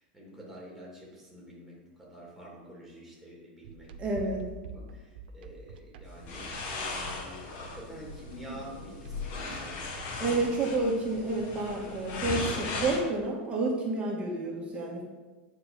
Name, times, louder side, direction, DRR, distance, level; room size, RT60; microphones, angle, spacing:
voice 1, 0.0-3.9 4.7-10.4, right 1 dB, ahead, -4 dB, 3.0 m, -47 dB
sound 1, 3.6-10.5, right 5 dB, 80° right, 0.8 m, -48 dB
voice 2, 4.0-4.5 10.2-15.0, right 2 dB, 20° right, -2 dB, 1.8 m, -30 dB
sound 2, 6.1-13.0, left 3 dB, 45° left, 1.9 m, -37 dB
8.8 x 5.0 x 7.0 m, 1.3 s
supercardioid pair, 145°, 5 cm